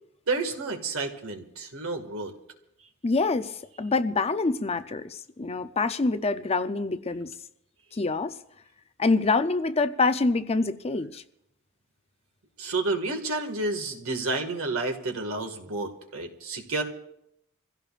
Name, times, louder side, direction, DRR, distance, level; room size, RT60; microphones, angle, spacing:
voice 1, 0.3-2.3 12.6-16.8, right 3 dB, 85° right, 1.9 m, -30 dB
voice 2, 3.0-7.3 7.9-8.4 9.0-11.2, left 3 dB, 30° left, 0.6 m, -26 dB
27.0 x 16.0 x 2.5 m
head